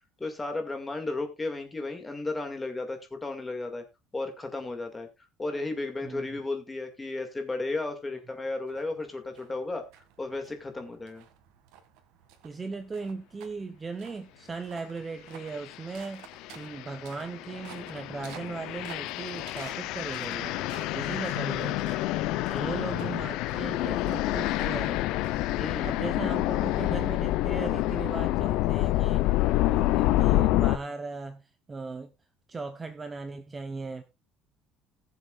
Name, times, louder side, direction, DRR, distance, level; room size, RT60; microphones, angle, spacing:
voice 1, 0.2-3.8 4.1-5.1 5.4-9.8 10.2-11.3 21.0-21.2 22.5-22.9 25.6-26.0, left 2 dB, 10° left, 2.1 m, -34 dB
sound 1, 8.7-26.4, right 9 dB, 80° right, 2.0 m, -54 dB
voice 2, 12.4-20.5 20.9-22.0 22.5-25.0 25.8-29.3 29.6-31.4 31.7-32.1 32.5-34.0, right 4 dB, 15° right, 0.8 m, -38 dB
sound 2, 15.5-15.8 16.3-30.8, left 16 dB, 65° left, 0.6 m, -28 dB
20.0 x 7.2 x 2.4 m
cardioid pair, 160°, 0 cm